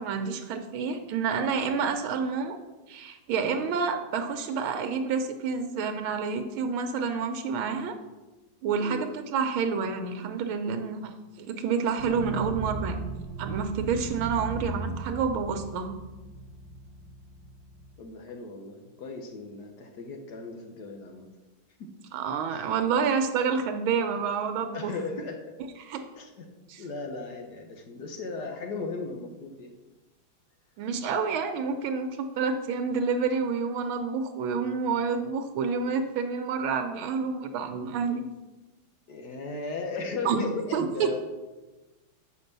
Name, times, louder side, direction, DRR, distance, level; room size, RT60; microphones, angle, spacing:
voice 1, 0.0-2.6 2.9-7.9 8.6-13.0 13.4-16.0 22.1-24.9 25.9-26.1 26.7-26.8 30.8-38.2 40.2-40.4 40.7-41.2, right 5 dB, 90° right, 7 dB, 1.5 m, -28 dB
sound 1, 12.0-18.0, right 4 dB, 75° right, 1.3 m, -37 dB
voice 2, 18.0-21.3 21.8-21.9 22.5-22.7 24.2-24.3 24.7-25.5 26.1-26.5 26.8-29.7 39.1-41.2, left 3 dB, 60° left, 3 dB, 1.4 m, -37 dB
6.9 x 5.3 x 6.6 m, 1.2 s
omnidirectional pair, 2.2 m